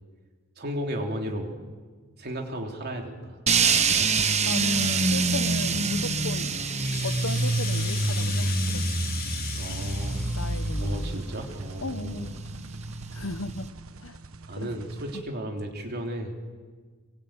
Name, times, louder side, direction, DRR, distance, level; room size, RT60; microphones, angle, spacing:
voice 1, 0.6-1.6 2.2-3.4 9.5-10.3 10.8-12.3 14.5-16.3, right 1 dB, 50° right, 3 dB, 3.4 m, -34 dB
sound 1, 3.5-13.7, right 4 dB, 30° right, 1.2 m, -26 dB
voice 2, 4.4-6.5 7.0-8.9 9.7-9.8 10.3-11.2 11.8-12.4 13.1-13.7 14.0-14.2 14.6-14.7 15.1-15.2, left 2 dB, 70° left, 12 dB, 1.2 m, -36 dB
Rattle (instrument), 6.6-11.4, left 9 dB, 45° left, 1.8 m, -37 dB
sound 2, 9.6-15.2, right 3 dB, 75° right, 1.3 m, -46 dB
25.0 x 23.0 x 9.1 m, 1.5 s
head